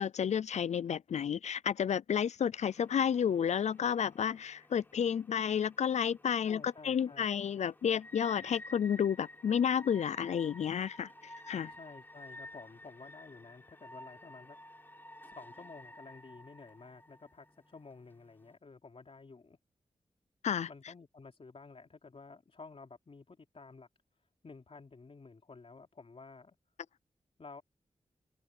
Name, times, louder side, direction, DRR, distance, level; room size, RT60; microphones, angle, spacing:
voice 1, 0.0-11.1 11.5-11.7 20.4-20.7, left 8 dB, 80° left, 0.4 m, -31 dB
sound 1, 2.6-18.5, left 1 dB, 15° left, 4.4 m, -53 dB
voice 2, 6.4-7.4 11.7-14.6 15.2-19.6 20.7-23.9 24.4-26.6 27.4-27.6, left 4 dB, 55° left, 4.2 m, -52 dB
cardioid pair, 45°, 12 cm